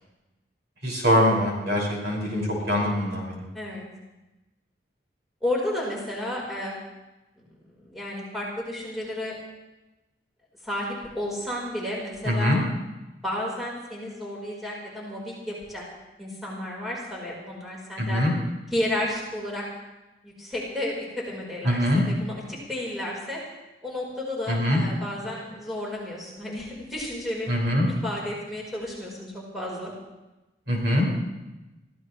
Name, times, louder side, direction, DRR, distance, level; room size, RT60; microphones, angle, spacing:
voice 1, 0.8-3.4 12.3-12.6 18.0-18.3 21.6-22.0 24.5-24.8 27.5-27.9 30.7-31.1, left 1 dB, 65° right, -2 dB, 5.9 m, -23 dB
voice 2, 5.4-6.7 7.4-7.5 7.8-9.3 10.6-12.6 13.2-15.8 16.2-18.2 18.7-19.6 20.2-23.4 23.8-27.5 28.0-29.9, left 1 dB, ahead, -4 dB, 4.4 m, -32 dB
24.5 x 15.5 x 3.2 m, 1.0 s
head